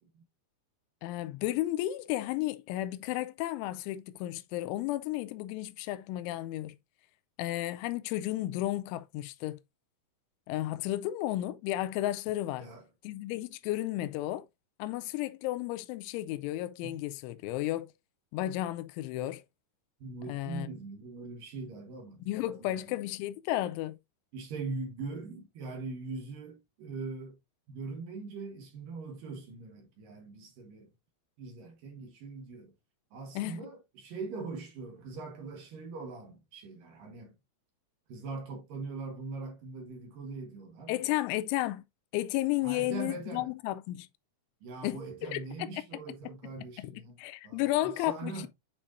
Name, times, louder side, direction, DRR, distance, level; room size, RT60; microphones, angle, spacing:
voice 1, 1.0-6.7 7.4-9.6 10.5-12.7 13.0-14.4 14.8-17.9 18.3-19.4 20.3-20.7 22.3-24.0 33.3-33.6 40.9-41.8 42.1-44.1 44.8-45.7 46.8-48.5, left 15 dB, 85° left, 2.9 m, -33 dB
voice 2, 20.0-23.0 24.3-27.4 27.7-30.9 31.4-32.7 33.1-37.3 38.1-40.9 42.6-43.5 44.6-47.2 47.4-48.5, right 3 dB, 70° right, 2.1 m, -41 dB
9.0 x 4.4 x 2.5 m
omnidirectional pair, 5.6 m